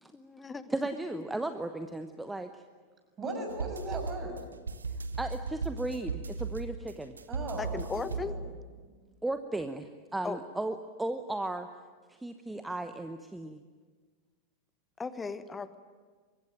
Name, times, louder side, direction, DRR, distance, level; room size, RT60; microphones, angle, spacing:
voice 1, 0.1-0.7 1.1-1.2 7.6-8.3 10.2-10.4 15.0-15.8, left 4 dB, 15° left, 13 dB, 1.3 m, -37 dB
voice 2, 0.7-2.6 5.2-7.2 9.2-11.7 12.1-13.6, right 2 dB, 5° right, 9 dB, 1.0 m, -35 dB
voice 3, 3.2-4.4 7.3-8.4, right 2 dB, 25° right, 3 dB, 6.5 m, -38 dB
sound 1, 3.5-8.8, right 4 dB, 75° right, 1.2 m, -37 dB
24.5 x 21.5 x 9.2 m, 1.5 s
figure-of-eight pair, 90°, 0 cm